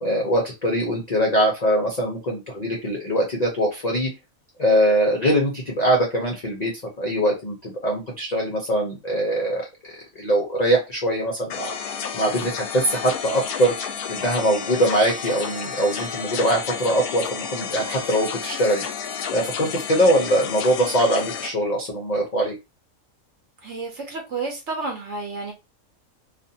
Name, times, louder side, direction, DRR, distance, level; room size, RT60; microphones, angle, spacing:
voice 1, 0.0-4.1 4.6-6.7 7.0-9.6 10.1-11.8 12.1-13.7 14.1-18.8 19.3-22.5, right 1 dB, 50° left, 0.5 m, -22 dB
sound 1, 11.5-21.5, left 7 dB, 90° left, 1.1 m, -31 dB
voice 2, 23.6-25.5, right 3 dB, 60° right, 0.9 m, -31 dB
2.5 x 2.5 x 2.6 m
omnidirectional pair, 1.5 m